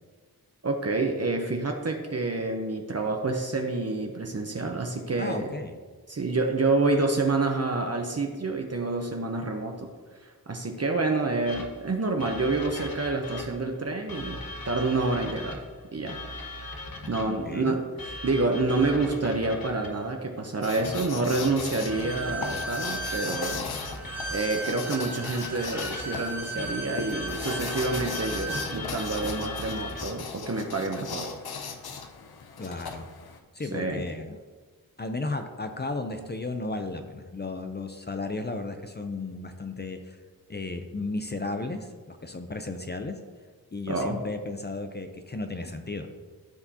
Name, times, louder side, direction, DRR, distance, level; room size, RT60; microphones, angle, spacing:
voice 1, 0.6-5.5 6.1-9.9 10.2-15.6 15.9-16.2 17.1-23.7 24.3-31.3 33.7-34.0 43.9-44.2, right 3 dB, 45° right, 2 dB, 0.8 m, -28 dB
voice 2, 5.2-5.8 17.3-17.8 32.6-33.1 33.5-34.4 35.0-40.2 40.5-43.2 43.7-46.1, left 3 dB, 30° left, 6 dB, 0.6 m, -34 dB
sound 1, 11.4-13.7 14.1-17.5 18.0-20.0 20.8-24.6 25.3-30.2, left 1 dB, 70° left, 1.3 m, -39 dB
sound 2, 20.6-33.4, left 5 dB, 90° left, 0.7 m, -38 dB
Bowed string instrument, 21.8-28.7, right 2 dB, 5° right, 1.9 m, -36 dB
13.0 x 4.8 x 2.8 m, 1.5 s
wide cardioid pair, 70°, 36 cm